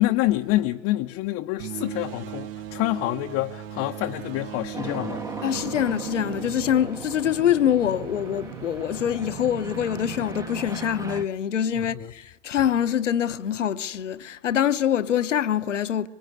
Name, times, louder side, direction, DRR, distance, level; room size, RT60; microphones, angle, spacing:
voice 1, 0.0-5.2 11.8-12.1, left 17 dB, 35° left, 0.7 m, -27 dB
sound 1, 1.6-7.6, right 12 dB, 50° right, 1.0 m, -37 dB
sound 2, 4.7-11.2, right 3 dB, 10° right, 0.8 m, -38 dB
voice 2, 5.4-16.1, left 10 dB, 75° left, 1.0 m, -24 dB
sound 3, 5.5-10.7, right 7 dB, 70° right, 1.7 m, -41 dB
23.5 x 23.0 x 9.7 m
figure-of-eight pair, 95°, 37 cm